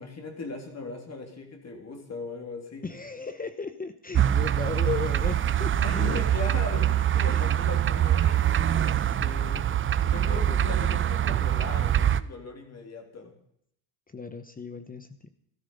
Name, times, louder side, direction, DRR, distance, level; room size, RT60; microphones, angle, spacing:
voice 1, 0.0-2.9 5.8-9.0 10.0-13.3, left 3 dB, 35° left, 3 dB, 3.2 m, -38 dB
voice 2, 2.8-5.7 7.3-7.6 9.2-9.7 10.2-10.7 14.1-15.3, left 5 dB, 20° left, 10 dB, 1.0 m, -36 dB
sound 1, 4.1-12.2, right 10 dB, 30° right, 0.5 m, -24 dB
13.0 x 12.5 x 5.5 m, 0.72 s
supercardioid pair, 85°, 45 cm